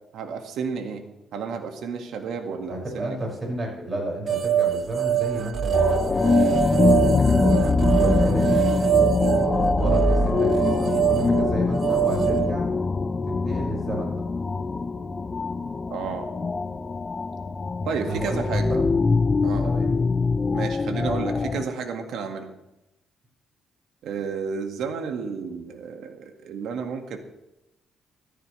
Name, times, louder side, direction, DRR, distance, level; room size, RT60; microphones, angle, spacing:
voice 1, 0.1-3.2 15.9-16.3 17.9-18.8 19.4-19.7 20.5-22.5 24.0-27.2, right 5 dB, 75° right, 5 dB, 2.0 m, -31 dB
voice 2, 2.7-8.6 9.4-12.7 13.3-14.2 17.8-18.9 19.6-19.9, right 1 dB, 35° right, -1 dB, 6.2 m, -32 dB
sound 1, 4.3-12.5, right 8 dB, 50° right, 0.7 m, -23 dB
sound 2, 5.7-21.6, left 4 dB, 30° left, 0.6 m, -23 dB
15.0 x 14.5 x 3.4 m, 0.93 s
cardioid pair, 90°, 0 cm